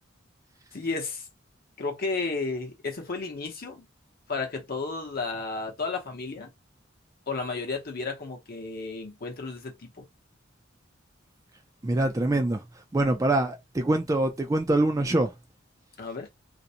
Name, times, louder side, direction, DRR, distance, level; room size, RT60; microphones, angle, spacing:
voice 1, 0.7-1.2 1.8-3.9 4.3-6.5 7.3-10.0 16.0-16.3, left 3 dB, 50° left, 0.8 m, -33 dB
voice 2, 11.8-12.6 12.9-15.3, right 2 dB, 15° right, 0.3 m, -24 dB
2.5 x 2.1 x 2.7 m
head